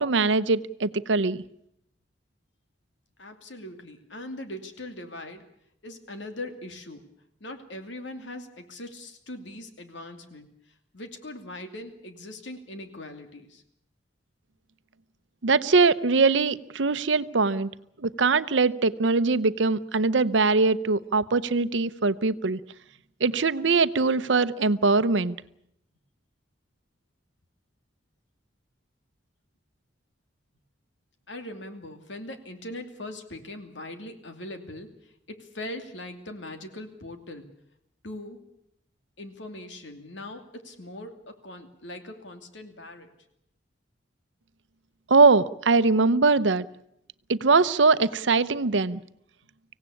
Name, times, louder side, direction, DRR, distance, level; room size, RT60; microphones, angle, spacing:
voice 1, 0.0-1.4 15.4-17.7 18.0-22.6 23.2-25.4 45.1-46.6 47.3-49.0, right 4 dB, 85° right, 14 dB, 0.8 m, -22 dB
voice 2, 3.2-5.5 5.8-7.0 7.4-10.5 10.9-13.6 31.3-34.9 35.3-37.5 38.0-38.4 39.2-43.1, left 1 dB, 80° left, 6 dB, 2.7 m, -40 dB
25.0 x 17.0 x 8.5 m, 0.77 s
head